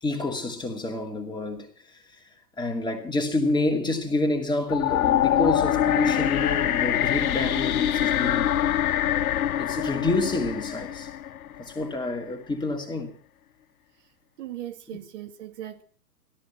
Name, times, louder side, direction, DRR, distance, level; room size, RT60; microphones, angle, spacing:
voice 1, 0.0-1.7 2.6-8.7 9.6-11.1 11.6-13.1 14.9-15.0, left 2 dB, 10° left, 2.4 m, -28 dB
sound 1, 4.7-11.8, left 11 dB, 60° left, 0.8 m, -24 dB
voice 2, 14.4-15.8, right 12 dB, 45° right, 2.1 m, -38 dB
16.5 x 13.5 x 5.9 m
figure-of-eight pair, 120°, 48 cm